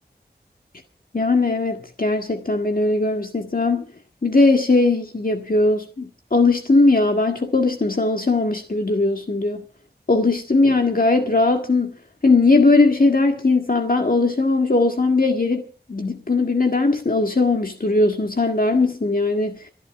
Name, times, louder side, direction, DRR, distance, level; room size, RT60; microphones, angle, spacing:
voice 1, 1.1-3.8 4.2-9.6 10.1-11.9 12.2-15.6 15.9-19.7, left 3 dB, 55° left, 1.7 m, -19 dB
29.0 x 11.0 x 3.6 m
wide cardioid pair, 45°, 18 cm